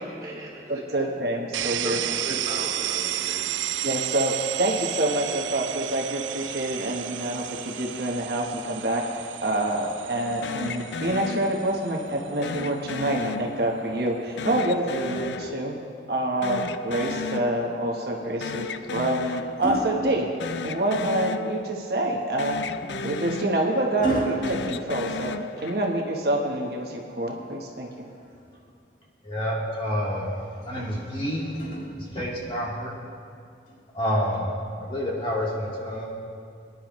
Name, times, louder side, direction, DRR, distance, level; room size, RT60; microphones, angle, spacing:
voice 1, 0.0-1.2 1.6-3.5, right 1 dB, 20° right, -6 dB, 3.3 m, -37 dB
voice 2, 0.7-2.0 3.8-15.7 16.1-20.3 20.6-22.6 23.0-25.3 25.6-27.9, right 1 dB, 60° right, 0 dB, 1.1 m, -27 dB
sound 1, 1.5-15.2, right 12 dB, 90° right, 0.4 m, -33 dB
sound 2, 10.4-11.9 12.4-14.0 14.4-16.2 16.4-18.0 18.2-19.9 20.3-22.1 22.4-24.0 24.4-26.1, left 4 dB, 80° left, 0.5 m, -34 dB
sound 3, 18.6-20.9 22.5-25.7 27.5-28.6 30.6-32.4 33.7-33.9, right 2 dB, 45° left, 1.5 m, -35 dB
voice 3, 29.2-31.5 32.0-32.9 33.9-36.1, equal, 30° left, -4 dB, 2.0 m, -28 dB
23.5 x 10.5 x 3.1 m, 2.4 s
head